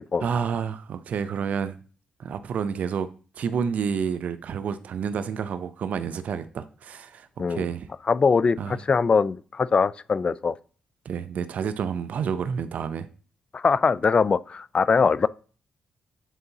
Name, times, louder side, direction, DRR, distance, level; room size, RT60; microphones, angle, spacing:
voice 1, 0.2-1.8 2.2-3.1 3.4-7.9 8.6-8.8 11.0-13.1, right 7 dB, 65° right, 0.5 m, -29 dB
voice 2, 8.1-10.5 13.5-15.3, left 5 dB, 40° left, 0.3 m, -22 dB
9.1 x 3.8 x 2.7 m
supercardioid pair, 55°, 3 cm